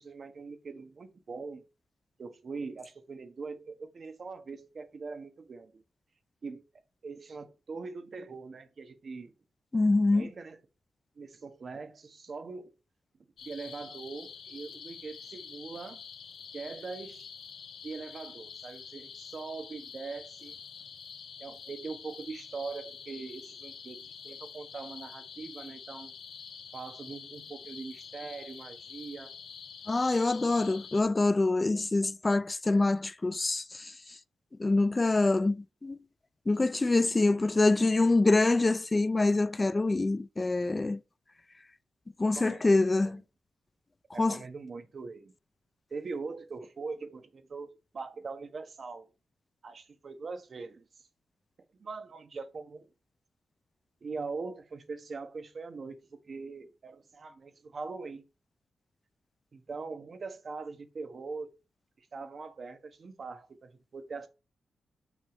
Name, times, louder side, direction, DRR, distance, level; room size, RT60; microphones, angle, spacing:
voice 1, 0.0-1.6 2.2-5.8 6.4-6.6 7.0-9.3 10.1-10.6 11.2-12.7 13.4-16.0 16.5-17.3 17.8-20.6 21.4-24.0 24.2-26.1 26.7-29.3 37.2-37.4 42.3-42.7 43.0-43.2 44.1-45.3 45.9-47.7 47.9-49.1 49.6-50.9 51.8-52.9 54.0-58.2 59.5-61.5 62.0-64.3, right 4 dB, 50° right, 1.2 m, -42 dB
voice 2, 9.7-10.3 29.9-33.6 34.6-35.6 35.8-36.0 36.5-41.0 42.2-43.2 44.2-44.4, left 2 dB, 25° left, 0.4 m, -25 dB
sound 1, 13.4-31.0, left 6 dB, 90° left, 1.1 m, -47 dB
6.2 x 5.6 x 5.2 m
cardioid pair, 80°, 0 cm